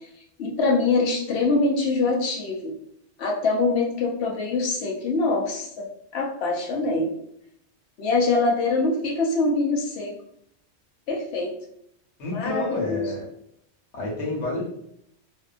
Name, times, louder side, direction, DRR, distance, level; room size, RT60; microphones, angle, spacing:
voice 1, 0.4-2.7 3.2-7.1 8.0-10.2 11.1-11.5 12.3-13.1, left 3 dB, 70° left, 0 dB, 0.9 m, -24 dB
voice 2, 12.2-13.3 13.9-14.6, left 2 dB, 90° left, -5 dB, 1.2 m, -28 dB
2.7 x 2.4 x 2.4 m, 0.72 s
omnidirectional pair, 1.1 m